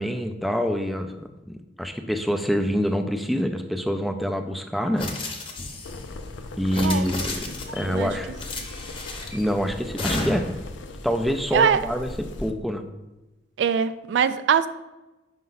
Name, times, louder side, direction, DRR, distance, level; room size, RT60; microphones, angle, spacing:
voice 1, 0.0-5.1 6.6-7.4 7.7-8.3 9.3-10.5 11.0-12.1 12.4-12.8, equal, ahead, 0.4 m, -26 dB
sound 1, 5.0-6.0 6.6-7.8 8.4-9.4 10.0-10.6, left 2 dB, 30° left, 0.8 m, -32 dB
sound 2, 5.8-12.5, left 2 dB, 85° left, 0.5 m, -39 dB
voice 2, 6.8-7.1 7.9-8.1 11.5-11.8 13.6-14.7, right 7 dB, 70° right, 0.3 m, -22 dB
5.4 x 5.2 x 3.9 m
head